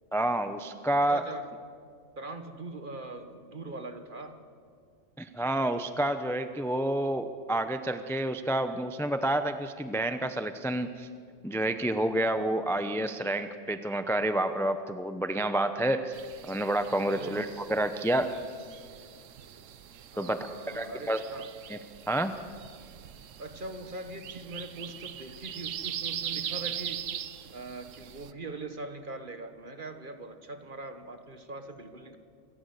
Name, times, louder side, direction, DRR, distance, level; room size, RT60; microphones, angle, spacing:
voice 1, 0.1-1.2 5.2-11.1 11.4-16.1 16.4-18.3 20.2-20.4 20.7-21.2 21.7-21.8 22.1-22.3, right 1 dB, 5° left, 9 dB, 0.6 m, -29 dB
voice 2, 1.1-1.5 2.2-4.4 17.0-17.8 20.1-21.5 23.4-27.1 27.5-32.2, right 2 dB, 45° right, 7 dB, 1.6 m, -42 dB
sound 1, 16.1-28.3, right 9 dB, 90° right, 1.2 m, -41 dB
27.5 x 14.5 x 8.2 m, 2.1 s
omnidirectional pair, 1.3 m